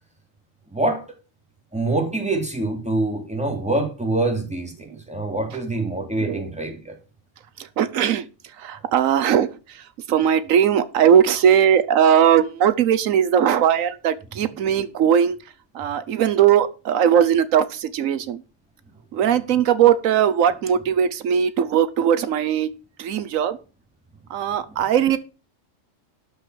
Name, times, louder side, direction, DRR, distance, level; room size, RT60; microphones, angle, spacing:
voice 1, 0.7-1.0 1.7-7.0 24.7-24.8, right 2 dB, 5° right, 2.6 m, -25 dB
voice 2, 7.8-8.3 8.6-15.4 15.7-18.4 19.1-22.7 23.0-23.6 24.3-25.2, right 9 dB, 85° right, 1.2 m, -19 dB
12.0 x 5.2 x 6.2 m
omnidirectional pair, 1.3 m